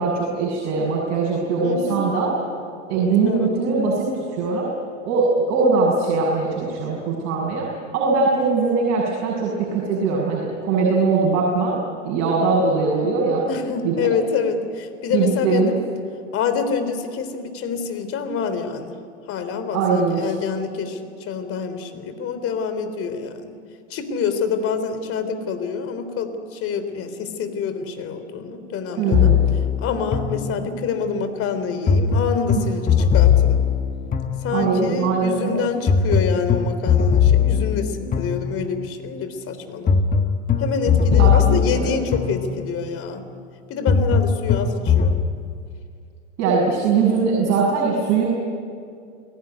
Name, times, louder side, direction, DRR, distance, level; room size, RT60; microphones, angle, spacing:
voice 1, 0.0-2.3 2.9-4.7 5.0-7.7 7.9-13.5 13.8-14.1 15.1-15.7 19.7-20.3 29.0-29.4 32.6-32.7 34.5-35.6 41.1-41.9 46.4-48.2, right 4 dB, 45° right, -2 dB, 7.0 m, -21 dB
voice 2, 1.6-2.0 3.3-3.5 13.5-15.8 16.3-19.0 19.3-23.6 23.9-29.3 29.8-33.6 34.4-39.9 40.6-43.2 43.7-45.3, left 6 dB, 40° left, 9 dB, 3.6 m, -26 dB
sound 1, 29.1-31.0 31.9-34.9 35.9-39.0 39.9-42.9 43.9-45.2, left 7 dB, 25° left, 1.8 m, -20 dB
28.5 x 18.5 x 9.6 m, 2.3 s
hypercardioid pair, 100°, 36 cm